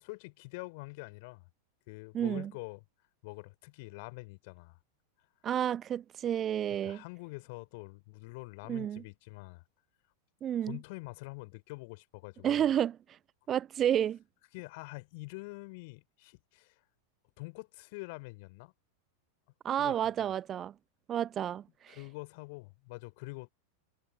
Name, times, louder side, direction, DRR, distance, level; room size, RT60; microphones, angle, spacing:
voice 1, 0.0-1.5 1.9-2.8 3.2-4.8 6.8-9.6 10.6-12.7 14.5-16.8 17.4-18.7 19.8-20.2 21.9-23.5, left 27 dB, 50° left, 3.1 m, -45 dB
voice 2, 2.1-2.5 5.4-7.0 8.7-9.0 10.4-10.8 12.4-13.2 13.5-14.2 19.6-20.7 21.1-22.0, right 10 dB, 25° right, 0.5 m, -31 dB
figure-of-eight pair, 90°, 0 cm